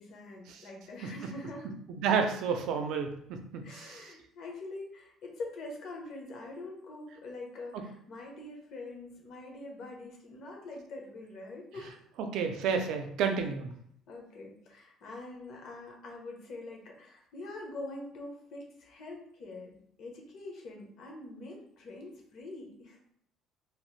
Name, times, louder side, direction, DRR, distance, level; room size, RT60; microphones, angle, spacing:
voice 1, 0.0-1.7 3.6-12.0 14.1-23.0, left 2 dB, 60° left, 0 dB, 0.8 m, -44 dB
voice 2, 2.0-4.1 12.3-13.7, right 6 dB, 70° right, 5 dB, 0.4 m, -30 dB
2.9 x 2.1 x 3.1 m, 0.71 s
cardioid pair, 140°, 0 cm